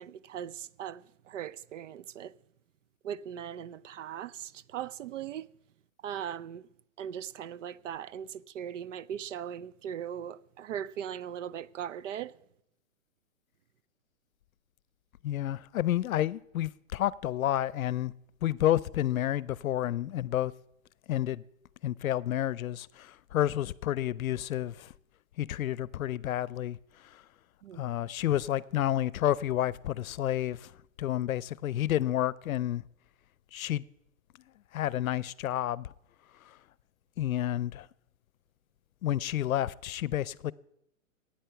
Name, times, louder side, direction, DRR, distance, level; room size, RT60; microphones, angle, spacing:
voice 1, 0.0-2.3 3.0-5.5 6.0-6.7 7.0-12.3 27.6-27.8, right 9 dB, 65° right, 0.6 m, -39 dB
voice 2, 15.2-18.1 18.4-20.5 21.1-21.4 21.8-24.9 25.4-26.8 27.8-30.7 31.0-32.8 33.5-33.8 34.7-35.9 37.2-37.9 39.0-40.5, left 12 dB, 85° left, 0.6 m, -30 dB
12.5 x 9.2 x 5.8 m
hypercardioid pair, 165°, 40 cm